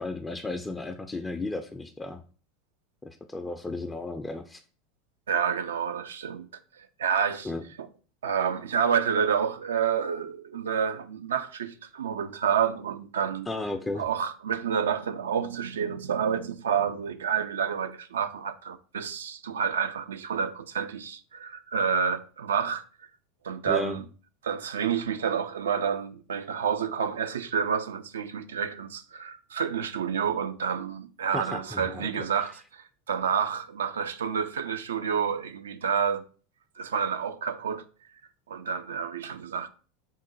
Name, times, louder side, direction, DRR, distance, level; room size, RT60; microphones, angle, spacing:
voice 1, 0.0-2.2 3.0-4.6 7.4-7.6 13.5-14.1 23.7-24.0 31.3-32.1, left 2 dB, 15° left, 0.3 m, -34 dB
voice 2, 5.3-6.5 6.7-7.5 7.8-7.9 8.2-13.5 14.0-22.8 23.4-24.1 24.4-36.2 36.8-37.8 38.5-39.7, right 7 dB, 85° right, 0.3 m, -29 dB
3.6 x 2.1 x 3.8 m
hypercardioid pair, 90°, 0 cm